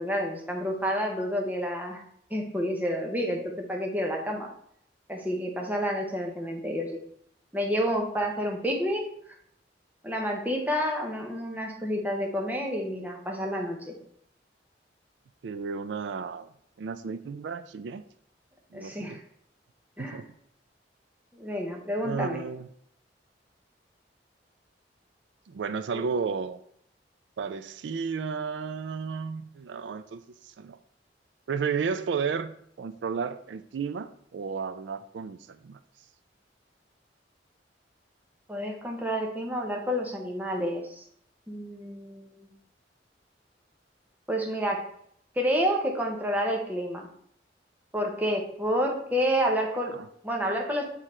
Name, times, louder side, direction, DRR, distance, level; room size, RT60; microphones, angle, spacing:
voice 1, 0.0-2.0 2.3-4.5 5.1-7.0 7.5-9.1 10.0-13.9 18.7-19.2 20.0-20.2 21.3-22.4 25.9-26.0 38.5-41.0 41.5-42.5 44.3-44.8 45.4-47.1 47.9-50.0 50.2-50.8, equal, 10° right, 1 dB, 0.9 m, -29 dB
voice 2, 15.4-16.5 16.8-18.0 18.7-19.2 20.0-20.3 22.0-22.7 25.5-26.6 27.4-30.8 31.5-35.8 49.9-50.1, right 5 dB, 80° right, 13 dB, 0.4 m, -33 dB
6.4 x 3.8 x 4.3 m, 0.69 s
head